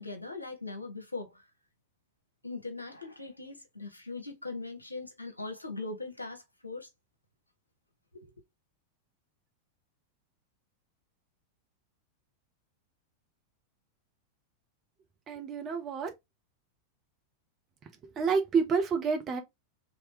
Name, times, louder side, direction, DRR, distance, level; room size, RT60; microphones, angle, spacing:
voice 1, 0.0-1.4 2.4-6.9 8.1-8.3, left 3 dB, 85° left, 0.9 m, -40 dB
voice 2, 15.3-16.1 18.2-19.4, right 5 dB, 30° right, 1.0 m, -28 dB
3.2 x 3.1 x 3.4 m
figure-of-eight pair, 90°, 0 cm